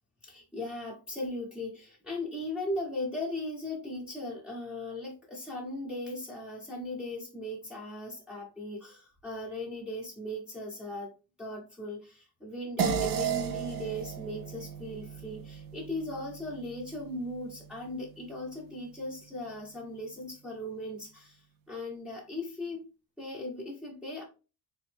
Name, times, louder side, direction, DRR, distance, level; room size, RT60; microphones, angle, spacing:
voice 1, 0.2-11.1 11.4-22.9 23.2-24.2, left 1 dB, ahead, -3 dB, 1.1 m, -38 dB
sound 1, 12.8-17.5, right 7 dB, 60° right, 0.7 m, -34 dB
4.1 x 3.1 x 3.4 m, 0.32 s
cardioid pair, 140°, 38 cm